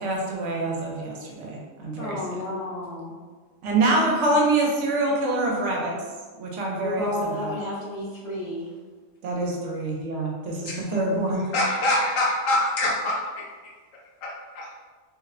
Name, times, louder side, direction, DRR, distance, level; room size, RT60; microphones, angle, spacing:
voice 1, 0.0-2.2 3.6-5.9 6.4-7.6 9.2-11.4, right 2 dB, 75° right, -2 dB, 0.9 m, -25 dB
voice 2, 2.0-3.1 6.8-8.7, left 1 dB, 70° left, -7 dB, 0.3 m, -31 dB
voice 3, 10.6-11.0 11.5-13.1 14.2-14.7, left 1 dB, 85° left, -3 dB, 1.1 m, -25 dB
2.7 x 2.0 x 2.4 m, 1.4 s
omnidirectional pair, 1.3 m